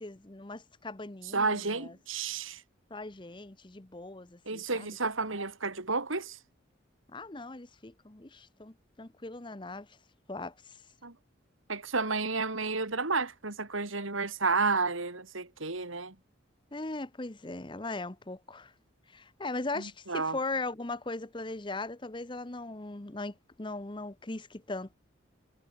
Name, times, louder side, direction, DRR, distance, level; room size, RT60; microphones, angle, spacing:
voice 1, 0.0-2.0 2.9-4.9 7.1-9.9 10.3-10.5 16.7-18.7 19.1-24.9, left 2 dB, 25° left, 0.9 m, -39 dB
voice 2, 1.3-2.6 4.5-6.4 11.0-11.1 11.7-16.1 19.8-20.4, right 4 dB, 80° right, 3.2 m, -31 dB
head